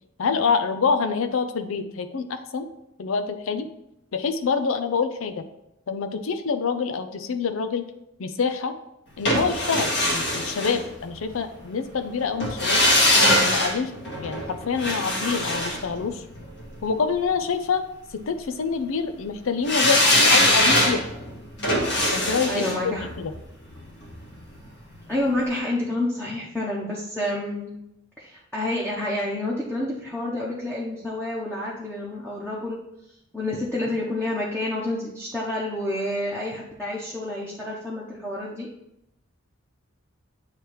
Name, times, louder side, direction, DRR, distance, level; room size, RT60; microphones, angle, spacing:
voice 1, 0.2-2.7 3.0-3.7 4.1-5.4 5.9-7.9 8.2-8.7 9.2-12.8 13.4-13.9 14.2-16.2 16.8-17.8 18.1-21.0 22.1-23.3, left 5 dB, 80° left, 8 dB, 0.5 m, -26 dB
sound 1, 9.3-11.4 12.4-16.7 19.7-24.7 25.0-25.1, left 1 dB, 55° left, 1.6 m, -22 dB
voice 2, 22.5-23.1 25.1-27.7 28.2-32.8 33.3-38.7, left 1 dB, 5° left, -6 dB, 0.9 m, -29 dB
8.4 x 3.1 x 4.7 m, 0.84 s
head